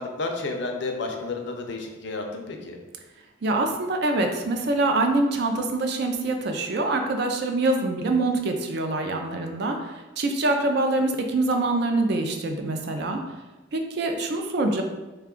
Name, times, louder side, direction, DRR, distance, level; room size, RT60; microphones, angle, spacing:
voice 1, 0.0-2.8, left 3 dB, 60° left, 3 dB, 0.5 m, -31 dB
voice 2, 3.4-13.2 13.7-14.8, right 2 dB, 55° right, 4 dB, 0.4 m, -25 dB
3.3 x 2.3 x 3.6 m, 1.1 s
head